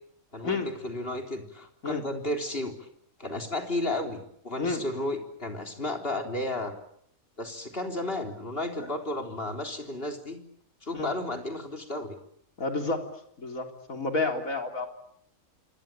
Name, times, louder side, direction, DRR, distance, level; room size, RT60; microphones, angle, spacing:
voice 1, 0.3-2.9 3.2-6.7 7.4-10.4 10.8-12.2, left 1 dB, 45° left, 4 dB, 4.0 m, -33 dB
voice 2, 4.6-5.1 8.8-8.9 10.9-11.1 12.6-13.0 13.4-14.9, left 3 dB, 75° left, 4 dB, 4.2 m, -30 dB
27.5 x 23.5 x 9.1 m, 0.70 s
omnidirectional pair, 1.4 m